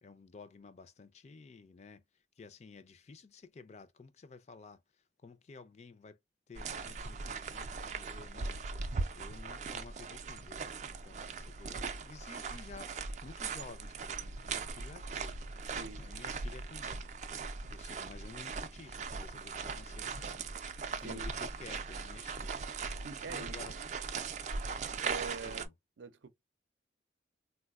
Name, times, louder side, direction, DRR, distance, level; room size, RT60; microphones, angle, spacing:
voice 1, 0.0-2.0 2.4-6.2 6.5-8.6 9.1-15.4 16.0-17.1 17.7-20.6 21.0-22.6 23.3-23.8 24.2-24.4 25.4-25.7, left 4 dB, 35° left, 0.4 m, -52 dB
sound 1, 6.6-25.7, right 4 dB, 40° right, 0.3 m, -40 dB
voice 2, 15.7-16.0 20.9-21.3 23.0-23.6 25.0-25.7 26.0-26.3, right 4 dB, 85° right, 0.5 m, -44 dB
3.9 x 2.1 x 2.3 m
head